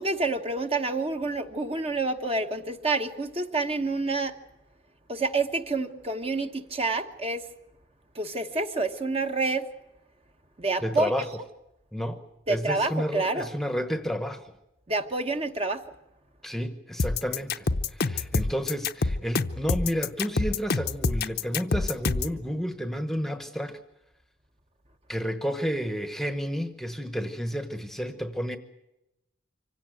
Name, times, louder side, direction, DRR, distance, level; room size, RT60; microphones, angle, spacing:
voice 1, 0.0-4.4 5.1-7.4 8.1-9.7 10.6-11.1 12.5-13.5 14.9-15.8, right 3 dB, 30° right, 1.2 m, -28 dB
voice 2, 10.8-11.3 11.9-14.5 16.4-23.8 25.1-28.6, equal, ahead, 1.0 m, -31 dB
sound 1, 17.0-22.4, left 3 dB, 50° left, 0.8 m, -26 dB
25.5 x 16.5 x 9.3 m
head